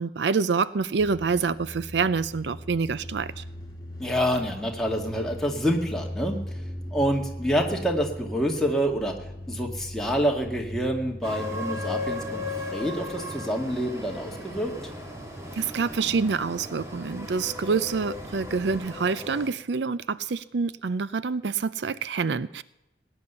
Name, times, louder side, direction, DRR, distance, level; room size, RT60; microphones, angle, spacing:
voice 1, 0.0-3.4 15.5-22.6, right 5 dB, 80° right, 16 dB, 0.5 m, -27 dB
sound 1, 1.0-18.8, left 1 dB, 20° left, 2.2 m, -41 dB
voice 2, 4.0-6.6 6.9-9.1 9.5-12.4 12.7-14.7, equal, 5° left, 0 dB, 2.0 m, -27 dB
sound 2, 11.2-19.5, left 2 dB, 15° right, 2.0 m, -36 dB
18.0 x 9.9 x 6.9 m, 0.92 s
head